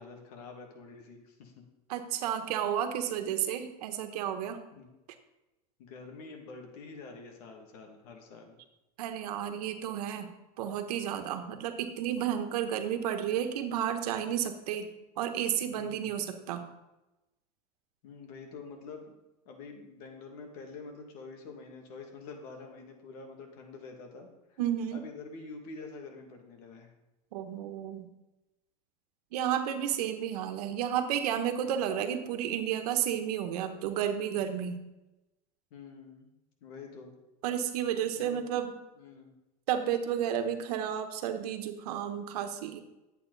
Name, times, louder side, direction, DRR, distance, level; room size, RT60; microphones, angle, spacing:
voice 1, 0.0-1.6 4.7-4.9 5.8-8.6 15.7-16.1 18.0-19.1 19.5-24.6 24.9-26.9 35.7-36.3 36.6-37.1 38.2-38.4 39.0-39.3, left 4 dB, 75° left, 2 dB, 2.3 m, -47 dB
voice 2, 1.9-4.6 9.0-14.9 15.2-16.6 24.6-25.0 27.3-28.1 29.3-34.8 37.4-38.7 39.7-42.8, right 9 dB, 85° right, 7 dB, 1.3 m, -32 dB
11.5 x 8.3 x 4.1 m, 0.98 s
supercardioid pair, 120°, 20 cm